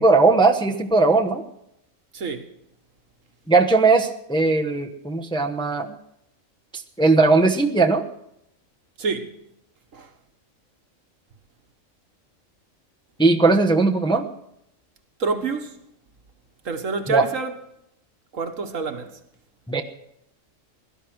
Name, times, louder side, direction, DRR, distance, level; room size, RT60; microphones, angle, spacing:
voice 1, 0.0-1.5 3.5-5.9 7.0-8.0 13.2-14.3 17.1-17.3 19.7-19.8, right 3 dB, 5° left, 0.9 m, -18 dB
voice 2, 9.0-9.3 9.9-10.1 15.2-15.7 16.6-17.5 18.3-19.1, right 4 dB, 70° right, 1.7 m, -27 dB
17.0 x 12.0 x 6.2 m
omnidirectional pair, 1.4 m